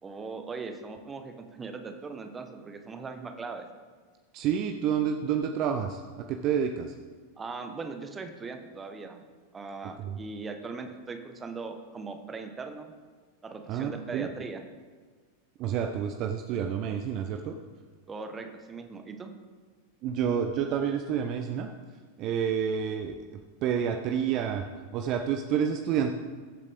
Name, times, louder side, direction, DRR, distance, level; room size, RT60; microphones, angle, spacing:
voice 1, 0.0-3.7 7.4-9.2 9.5-12.9 13.4-14.6 18.1-19.3, right 4 dB, 15° right, 6 dB, 1.3 m, -39 dB
voice 2, 4.3-6.9 10.0-10.2 13.7-14.3 15.6-17.5 20.0-21.7 22.2-24.6 24.9-26.1, right 8 dB, 40° right, 5 dB, 0.8 m, -29 dB
21.5 x 8.3 x 3.6 m, 1.5 s
figure-of-eight pair, 90°, 0 cm